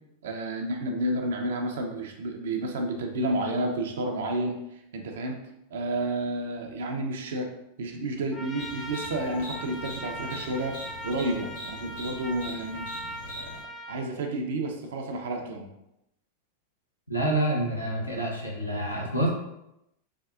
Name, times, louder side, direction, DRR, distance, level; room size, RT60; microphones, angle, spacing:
voice 1, 0.2-5.4 5.7-7.5 7.8-10.7 11.0-12.8 13.2-13.5 13.9-15.7, right 1 dB, 60° right, 2 dB, 0.4 m, -30 dB
Trumpet, 8.3-14.0, equal, 25° left, 0.3 m, -40 dB
sound 1, 8.6-13.6, equal, 60° left, 1.4 m, -42 dB
voice 2, 17.1-19.3, right 1 dB, 85° left, -2 dB, 0.7 m, -27 dB
3.5 x 2.3 x 2.4 m, 0.84 s
figure-of-eight pair, 90°, 0 cm